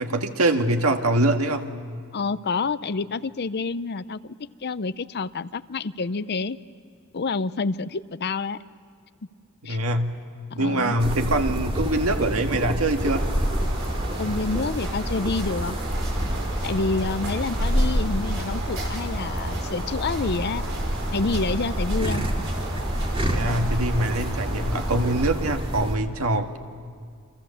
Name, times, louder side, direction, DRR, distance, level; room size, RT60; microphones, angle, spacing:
voice 1, 0.0-1.6 9.7-10.2 10.6-13.3 23.3-26.6, right 1 dB, 85° right, 5 dB, 1.7 m, -24 dB
voice 2, 2.1-6.6 7.1-8.6 9.6-9.8 10.5-10.9 14.2-15.8 16.6-20.7 21.1-22.2, left 4 dB, 50° left, 15 dB, 0.6 m, -28 dB
sound 1, 11.0-26.0, equal, 25° right, 2.3 m, -28 dB
sound 2, 12.9-25.3, right 1 dB, 60° right, 5.4 m, -33 dB
29.0 x 25.5 x 7.1 m, 2.1 s
head